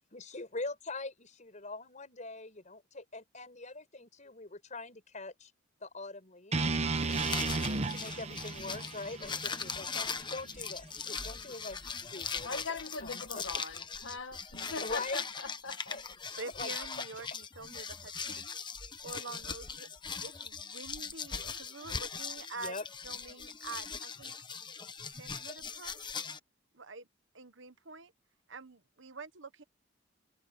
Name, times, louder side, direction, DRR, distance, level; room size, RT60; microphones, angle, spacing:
voice 1, 0.1-5.5 5.8-6.7 7.3-11.8 12.1-13.8 14.8-15.2 15.9-17.0 22.6-22.8, left 3 dB, 40° left, 6.0 m, -43 dB
sound 1, 6.5-10.7, right 3 dB, 35° right, 1.2 m, -34 dB
sound 2, 7.0-26.4, left 5 dB, 25° left, 1.1 m, -40 dB
voice 2, 12.4-16.0, left 4 dB, 80° left, 1.6 m, -41 dB
voice 3, 16.4-18.6 19.0-19.9 20.2-22.7 23.0-24.3 25.1-26.0 26.7-27.1 27.3-28.1 28.5-29.6, right 3 dB, 75° right, 1.4 m, -46 dB
head